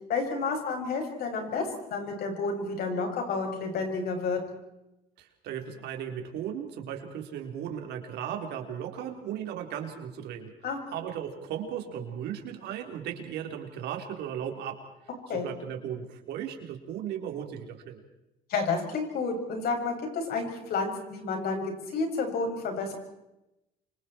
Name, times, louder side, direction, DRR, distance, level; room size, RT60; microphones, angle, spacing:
voice 1, 0.1-4.4 10.6-10.8 15.3-15.5 18.5-22.9, left 4 dB, 65° left, 3 dB, 6.9 m, -30 dB
voice 2, 5.2-10.5 10.9-14.8 15.3-18.0, right 9 dB, 80° right, 4 dB, 3.8 m, -36 dB
28.5 x 25.5 x 4.5 m, 0.91 s
cardioid pair, 110°, 17 cm